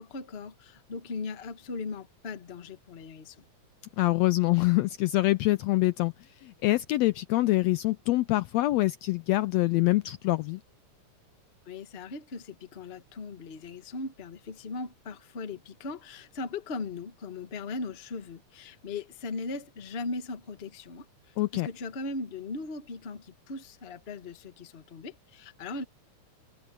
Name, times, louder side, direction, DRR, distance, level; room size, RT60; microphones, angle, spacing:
voice 1, 0.0-3.4 11.6-25.8, left 3 dB, 35° left, 1.0 m, -38 dB
voice 2, 4.0-6.1 6.4-10.6 21.4-21.7, left 18 dB, 80° left, 1.6 m, -25 dB
omnidirectional pair, 3.4 m